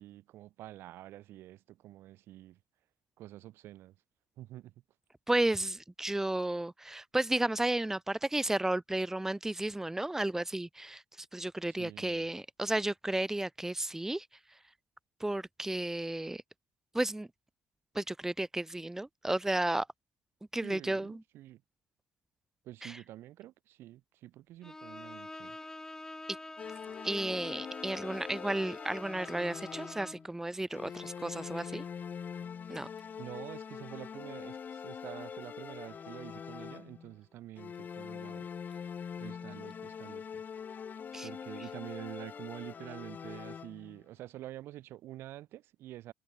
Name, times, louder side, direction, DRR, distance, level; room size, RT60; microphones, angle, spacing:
voice 1, 0.0-2.6 3.2-3.9 4.4-4.7 11.7-12.2 20.6-21.6 22.7-25.6 33.2-38.5 39.2-40.4 41.2-46.1, right 14 dB, 70° right, 3.5 m, -47 dB
voice 2, 5.3-14.3 15.2-16.4 16.9-17.3 17.9-19.9 20.5-21.2 22.8-23.0 27.0-31.8 32.7-32.9 41.1-41.3, right 1 dB, 10° right, 2.8 m, -33 dB
Bowed string instrument, 24.6-30.3, left 2 dB, 15° left, 2.4 m, -47 dB
sound 1, 26.6-30.3 30.7-37.2 37.6-44.0, left 7 dB, 45° left, 3.6 m, -43 dB
supercardioid pair, 70°, 4 cm